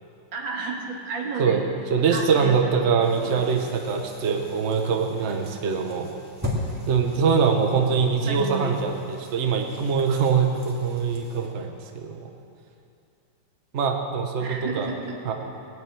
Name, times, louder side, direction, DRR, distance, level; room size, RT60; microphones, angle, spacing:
voice 1, 0.3-1.8 2.1-2.9 3.2-3.6 8.3-8.8 14.4-15.2, right 4 dB, 85° right, 0 dB, 2.4 m, -33 dB
voice 2, 1.9-6.1 6.9-8.9 9.3-12.2 13.7-14.9 15.2-15.3, right 5 dB, 45° right, 4 dB, 1.2 m, -23 dB
sound 1, 3.0-11.5, left 1 dB, 10° right, 2.1 m, -39 dB
20.0 x 6.8 x 8.8 m, 2.6 s
omnidirectional pair, 2.1 m